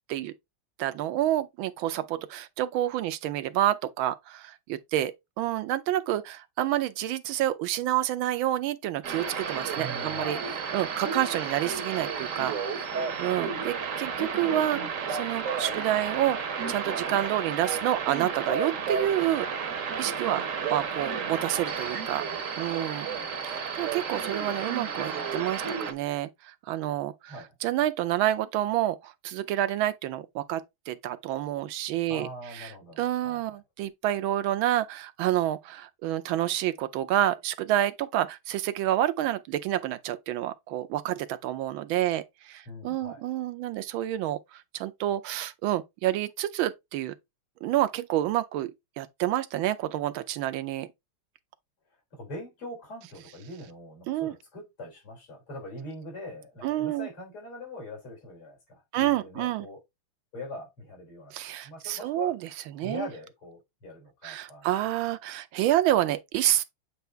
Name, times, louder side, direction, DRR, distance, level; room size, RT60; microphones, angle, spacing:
voice 1, 0.8-10.4 10.7-14.8 15.1-16.4 16.7-19.5 20.0-20.4 20.7-22.2 22.6-23.1 23.4-27.4 27.6-32.3 32.5-47.1 47.6-48.7 49.0-50.9 54.1-54.3 56.6-57.1 58.9-59.7 61.3-62.4 62.7-63.1 64.2-66.6, right 13 dB, 75° right, 1.3 m, -28 dB
sound 1, 9.0-25.9, right 6 dB, 50° right, 1.0 m, -32 dB
voice 2, 9.8-10.6 27.3-27.6 32.1-33.6 42.7-43.3 52.1-59.8 60.3-61.3 61.6-64.7, left 1 dB, 85° left, 4.6 m, -42 dB
8.0 x 2.7 x 4.4 m
omnidirectional pair, 2.4 m